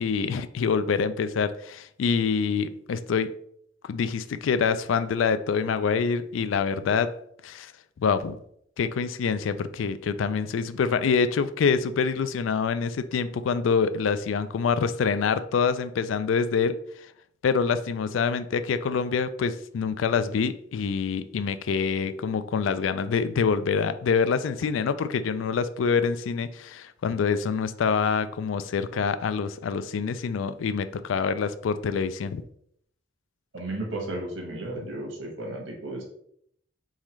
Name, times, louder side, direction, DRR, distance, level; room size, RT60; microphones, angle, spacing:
voice 1, 0.0-3.3 3.9-7.2 7.4-7.7 8.0-8.4 8.8-16.8 17.4-32.4, left 5 dB, 80° left, 0.3 m, -26 dB
voice 2, 33.5-36.0, right 2 dB, 85° right, 1.4 m, -34 dB
4.1 x 3.7 x 3.1 m
head